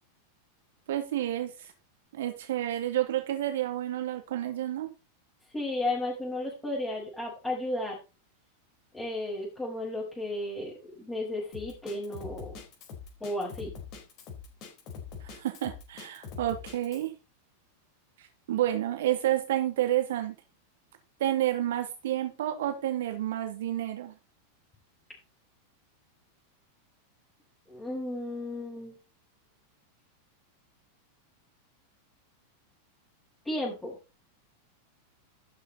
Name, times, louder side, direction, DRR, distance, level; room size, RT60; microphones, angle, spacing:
voice 1, 0.9-1.7 2.1-4.9 15.2-17.1 18.5-20.3 21.2-24.1, right 13 dB, 55° right, 2.6 m, -30 dB
voice 2, 5.5-8.0 8.9-12.5 13.2-13.7 27.7-29.0 33.5-34.0, left 1 dB, 10° left, 5.2 m, -34 dB
Drum kit, 11.5-17.1, left 6 dB, 40° left, 4.1 m, -43 dB
12.0 x 7.1 x 4.1 m
figure-of-eight pair, 90°, 0 cm